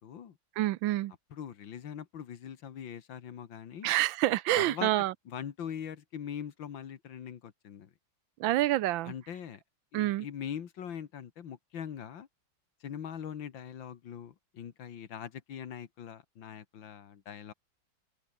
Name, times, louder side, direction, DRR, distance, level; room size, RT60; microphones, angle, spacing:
voice 1, 0.0-0.4 1.3-3.9 4.6-4.9 5.3-7.9 9.0-9.6 9.9-12.3 12.8-17.5, left 8 dB, 75° left, 2.2 m, -42 dB
voice 2, 0.6-1.1 3.8-5.1 8.4-9.1 9.9-10.3, right 15 dB, 80° right, 1.4 m, -27 dB
omnidirectional pair, 2.1 m